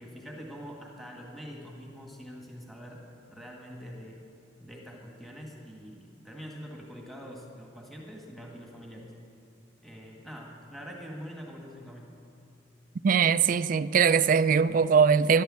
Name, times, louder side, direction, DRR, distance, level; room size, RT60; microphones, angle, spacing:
voice 1, 0.0-4.2 4.6-9.1 9.8-12.1, equal, ahead, 1.8 m, -44 dB
voice 2, 13.0-15.4, right 6 dB, 50° right, 0.4 m, -21 dB
14.0 x 11.5 x 7.6 m
head